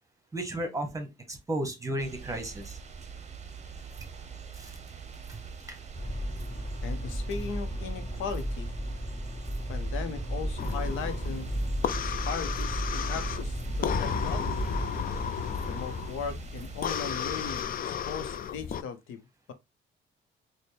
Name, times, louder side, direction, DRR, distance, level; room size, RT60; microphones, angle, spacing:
voice 1, 0.3-2.8 4.5-4.8 5.3-5.4 5.7-5.8, right 1 dB, 15° right, 1.1 m, -34 dB
sound 1, 2.0-17.6, right 5 dB, 35° right, 0.7 m, -43 dB
sound 2, 5.9-14.8, equal, 25° left, 2.3 m, -34 dB
voice 2, 6.8-8.7 9.7-11.5 11.9-14.8 15.7-19.5, left 6 dB, 85° left, 0.7 m, -38 dB
sound 3, 10.6-18.8, left 8 dB, 45° left, 0.4 m, -34 dB
4.2 x 2.1 x 3.3 m
cardioid pair, 90°, 20 cm